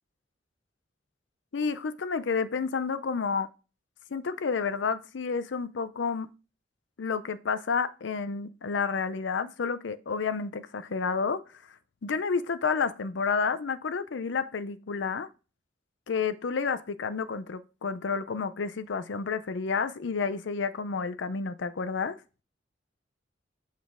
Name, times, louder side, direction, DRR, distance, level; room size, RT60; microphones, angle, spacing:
voice 1, 1.5-3.5 4.1-6.3 7.0-11.6 12.0-15.3 16.1-22.2, left 5 dB, 75° left, 0.5 m, -30 dB
7.3 x 6.1 x 3.6 m
head